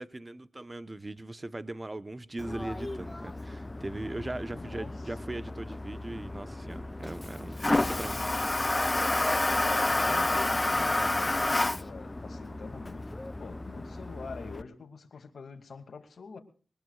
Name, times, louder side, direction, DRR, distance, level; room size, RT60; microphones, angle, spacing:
voice 1, 0.0-8.3, right 2 dB, 25° right, 14 dB, 1.0 m, -39 dB
Toilet flush, 2.4-14.6, left 2 dB, 25° left, 0.6 m, -31 dB
voice 2, 4.5-4.9 9.9-16.4, left 4 dB, 65° left, 6 dB, 2.5 m, -45 dB
21.5 x 20.0 x 2.4 m, 0.39 s
cardioid pair, 65°, 0 cm